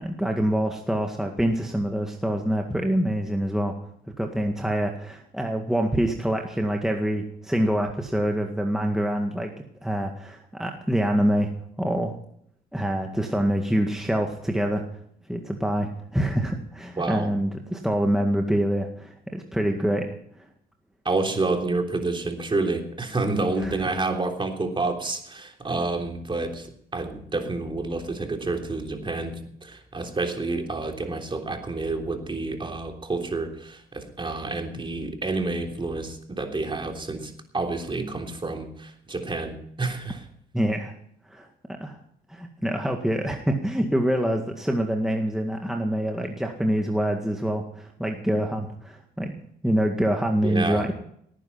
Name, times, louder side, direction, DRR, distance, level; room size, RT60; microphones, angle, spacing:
voice 1, 0.0-3.7 4.2-9.5 9.8-11.5 11.8-12.2 12.7-14.8 15.3-20.1 23.6-23.8 40.5-40.9 41.3-41.5 41.8-42.0 42.3-49.3 49.6-50.9, equal, ahead, 3 dB, 1.9 m, -25 dB
voice 2, 17.0-17.3 21.0-26.7 26.9-40.2 50.4-50.9, right 3 dB, 25° right, 3 dB, 3.4 m, -29 dB
17.5 x 9.9 x 5.8 m, 0.69 s
supercardioid pair, 65°, 19 cm